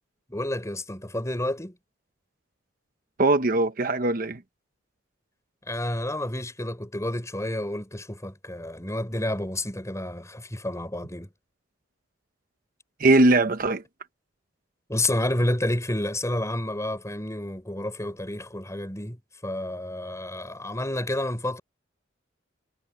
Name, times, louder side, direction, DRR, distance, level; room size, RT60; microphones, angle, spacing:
voice 1, 0.3-1.7 5.7-11.3 14.9-21.6, left 1 dB, 15° left, 4.8 m, -30 dB
voice 2, 3.2-4.4 13.0-13.8, right 2 dB, 45° right, 1.0 m, -20 dB
head